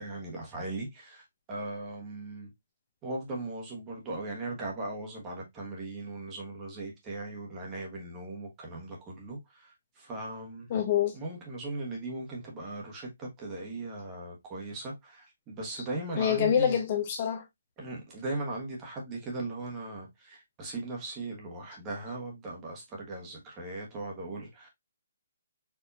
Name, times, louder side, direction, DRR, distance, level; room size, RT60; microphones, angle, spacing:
voice 1, 0.0-2.5 3.0-10.7 11.1-16.8 17.8-24.7, right 2 dB, 20° right, 1.3 m, -38 dB
voice 2, 10.7-11.2 16.2-17.4, left 9 dB, 35° left, 0.7 m, -26 dB
4.5 x 2.7 x 2.6 m
hypercardioid pair, 160°, 0 cm